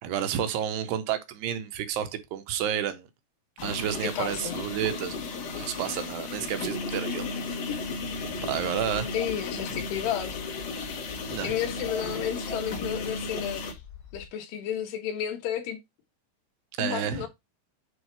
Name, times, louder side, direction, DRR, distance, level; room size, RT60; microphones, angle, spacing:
voice 1, 0.0-3.1 3.6-5.2 5.6-7.3 8.5-9.1 11.3-11.5 16.8-17.3, right 9 dB, 80° right, 2.8 m, -30 dB
sound 1, 3.6-13.7, left 3 dB, 60° left, 3.0 m, -34 dB
voice 2, 4.0-4.6 9.1-10.4 11.4-13.8 14.1-15.8 16.8-17.3, left 9 dB, 75° left, 3.3 m, -32 dB
sound 2, 7.7-14.3, left 9 dB, 40° left, 3.0 m, -47 dB
8.0 x 3.5 x 4.6 m
omnidirectional pair, 4.9 m